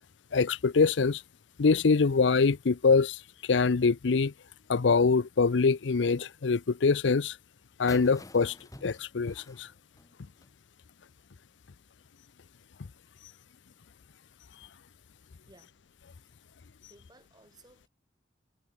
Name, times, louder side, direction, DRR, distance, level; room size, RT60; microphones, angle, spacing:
voice 1, 0.3-1.2 1.6-3.2 3.5-4.3 4.7-7.3 7.8-8.5 8.8-9.7, left 4 dB, 85° left, 0.6 m, -24 dB
sound 1, 7.9-10.6, left 2 dB, 20° left, 1.5 m, -49 dB
voice 2, 15.4-15.7 16.5-16.6 16.9-17.9, right 2 dB, 25° right, 7.8 m, -59 dB
head